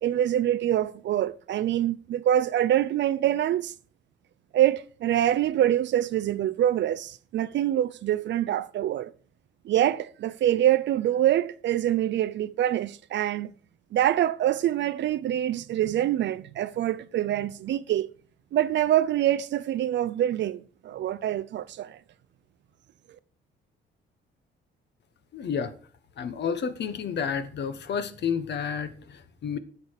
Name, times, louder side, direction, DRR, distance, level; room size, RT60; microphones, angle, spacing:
voice 1, 0.0-3.7 4.5-9.1 9.7-13.5 13.9-18.1 18.5-22.0, right 12 dB, 65° right, 0.5 m, -25 dB
voice 2, 25.3-25.7 26.2-29.6, left 7 dB, 60° left, 1.3 m, -30 dB
10.5 x 6.7 x 4.7 m
cardioid pair, 90°, 20 cm